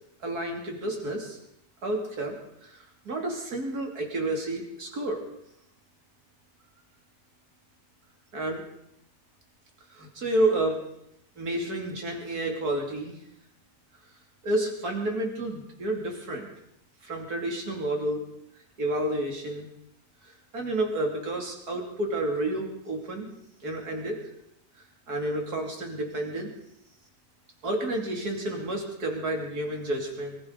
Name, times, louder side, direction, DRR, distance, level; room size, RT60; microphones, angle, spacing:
voice 1, 0.2-1.4 1.8-2.4 2.6-5.2 8.3-8.6 9.9-10.8 11.4-13.2 14.4-16.5 17.0-18.2 18.8-19.7 20.2-23.3 23.6-24.2 25.1-26.5 27.6-30.4, right 1 dB, 60° right, 1 dB, 3.3 m, -30 dB
25.0 x 14.5 x 4.0 m, 0.77 s
omnidirectional pair, 1.8 m